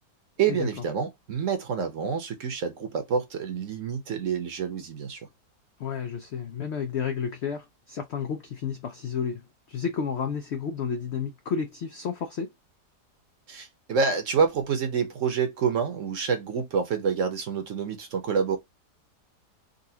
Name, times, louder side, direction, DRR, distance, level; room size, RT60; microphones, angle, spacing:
voice 1, 0.4-5.3 13.5-18.6, right 6 dB, 55° right, 1.0 m, -27 dB
voice 2, 5.8-12.5, left 6 dB, 85° left, 0.5 m, -31 dB
4.0 x 2.4 x 2.7 m
omnidirectional pair, 1.8 m